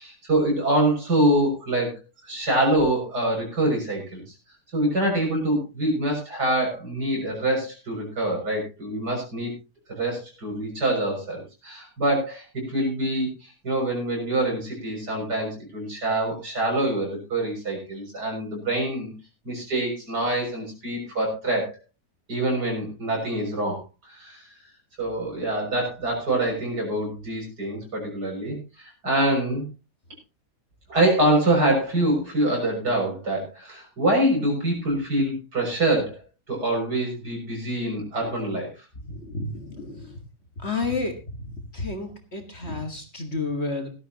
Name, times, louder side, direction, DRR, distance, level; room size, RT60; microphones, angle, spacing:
voice 1, 0.0-4.4 4.7-9.5 9.9-19.1 19.4-21.8 22.3-24.5 25.0-29.6 30.9-36.2 36.5-38.7, right 1 dB, 65° right, 0 dB, 7.2 m, -25 dB
voice 2, 39.1-40.0 40.6-41.1 41.7-43.9, left 3 dB, 40° left, 4 dB, 2.0 m, -30 dB
18.0 x 12.5 x 2.9 m, 0.28 s
omnidirectional pair, 1.9 m